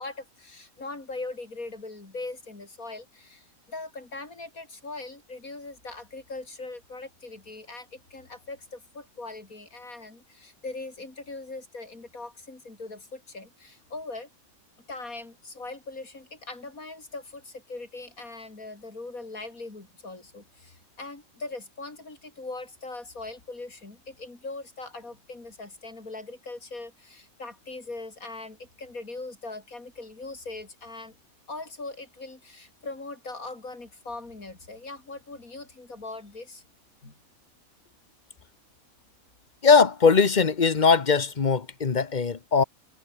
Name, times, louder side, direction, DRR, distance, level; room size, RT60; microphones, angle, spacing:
voice 1, 0.0-14.3 14.9-31.2 31.5-36.6 37.0-37.2, left 3 dB, 80° left, 5.0 m, -40 dB
voice 2, 39.6-42.6, left 5 dB, 35° left, 1.1 m, -20 dB
omnidirectional pair, 1.5 m